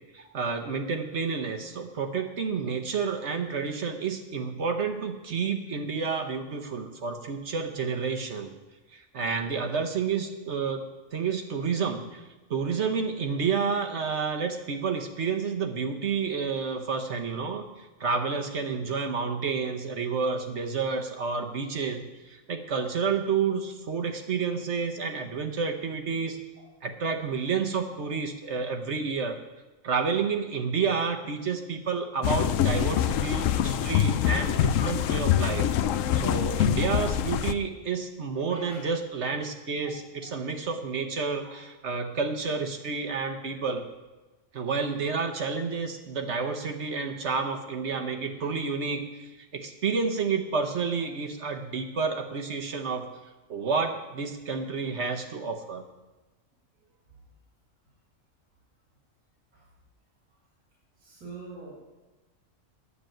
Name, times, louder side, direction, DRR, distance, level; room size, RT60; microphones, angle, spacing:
voice 1, 0.1-8.5 8.9-26.4 26.8-29.4 29.8-35.7 36.2-43.8 44.5-53.1 53.5-55.8, right 5 dB, 60° right, 3 dB, 1.2 m, -30 dB
sound 1, 32.2-37.5, left 10 dB, 75° left, 0.9 m, -25 dB
voice 2, 38.3-38.9 41.4-41.5 48.3-48.8 59.5-59.6 61.0-61.8, right 3 dB, 85° right, -4 dB, 3.1 m, -45 dB
9.9 x 6.9 x 9.0 m, 1.1 s
omnidirectional pair, 1.4 m